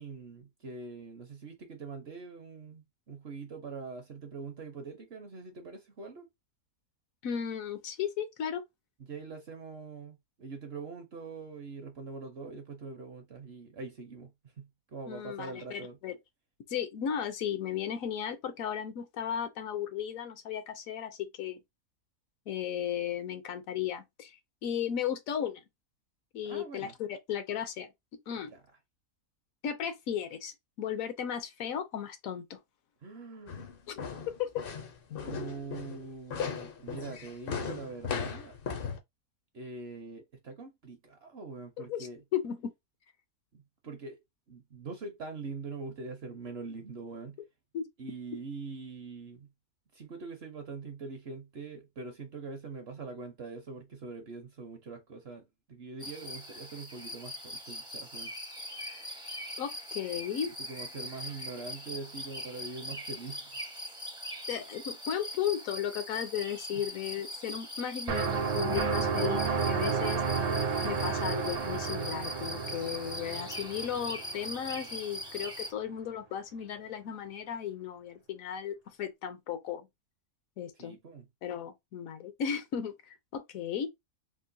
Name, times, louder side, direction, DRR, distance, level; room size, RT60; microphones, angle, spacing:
voice 1, 0.0-6.3 9.1-16.0 26.4-26.9 28.5-28.6 33.0-33.7 35.2-38.6 39.5-42.2 43.5-44.2 44.5-47.4 48.0-49.5 49.9-55.4 55.7-58.3 60.7-63.5 66.7-66.8 80.8-81.3, right 4 dB, 55° right, 0.8 m, -43 dB
voice 2, 7.2-8.6 15.1-16.1 16.7-21.6 22.5-24.4 24.6-25.6 26.3-27.9 28.3-28.5 29.6-32.6 33.9-34.0 34.4-34.6 35.1-35.3 41.9-42.7 47.7-47.9 59.6-60.5 64.5-70.2 70.8-79.9 80.6-81.0 81.4-83.9, left 9 dB, 70° left, 1.0 m, -35 dB
sound 1, 33.5-39.0, left 6 dB, 55° left, 0.6 m, -37 dB
sound 2, 56.0-75.7, left 1 dB, 5° right, 0.4 m, -42 dB
sound 3, 68.1-74.8, right 5 dB, 75° right, 0.3 m, -31 dB
3.7 x 2.4 x 2.6 m
omnidirectional pair, 1.6 m